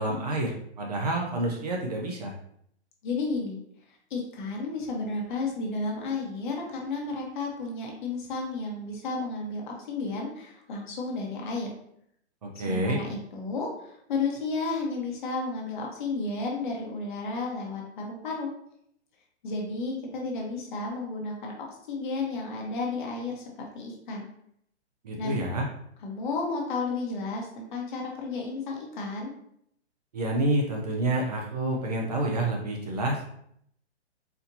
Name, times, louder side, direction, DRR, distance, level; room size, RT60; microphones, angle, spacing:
voice 1, 0.0-2.3 12.4-13.0 25.0-25.7 30.1-33.3, right 2 dB, 35° right, 0 dB, 0.5 m, -28 dB
voice 2, 3.0-3.6 4.1-11.7 12.6-18.5 19.4-21.5 21.9-23.4 23.7-24.3 25.2-25.4 26.0-29.3, left 3 dB, 45° left, -1 dB, 1.1 m, -32 dB
4.2 x 2.7 x 2.7 m, 0.70 s
hypercardioid pair, 155°, 34 cm